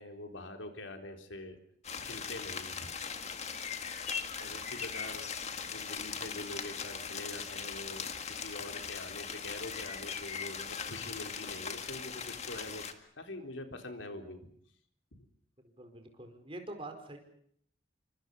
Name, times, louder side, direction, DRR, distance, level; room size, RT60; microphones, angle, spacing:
voice 1, 0.0-1.6 2.0-2.9 4.4-5.3 5.6-14.5 15.1-15.3, left 2 dB, 80° left, 5 dB, 3.9 m, -45 dB
sound 1, 1.8-12.9, left 6 dB, 35° left, 1.9 m, -40 dB
voice 2, 15.8-17.2, right 2 dB, 30° right, 6 dB, 4.7 m, -45 dB
29.0 x 25.0 x 5.5 m, 0.63 s
head